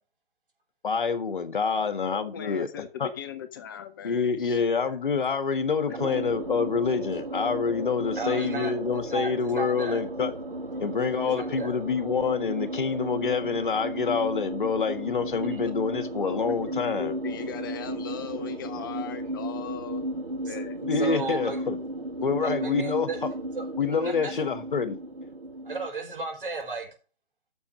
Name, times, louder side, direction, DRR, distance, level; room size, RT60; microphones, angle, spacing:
voice 1, 0.8-3.1 4.0-10.3 10.8-17.1 20.8-21.8 22.2-23.1 23.8-25.0, left 5 dB, 60° left, 1.5 m, -27 dB
voice 2, 2.1-4.6 4.9-5.0 16.2-16.5 17.0-20.2 20.5-21.3, left 8 dB, 20° left, 0.7 m, -39 dB
sound 1, 5.9-25.9, right 1 dB, 85° right, 2.6 m, -34 dB
voice 3, 8.1-8.7 9.1-10.0 11.2-11.7 15.5-15.6 20.4-20.6 20.9-21.6 22.2-23.2 23.5-24.4 25.6-26.9, right 3 dB, 65° right, 5.0 m, -35 dB
10.0 x 6.7 x 5.2 m
figure-of-eight pair, 140°, 29 cm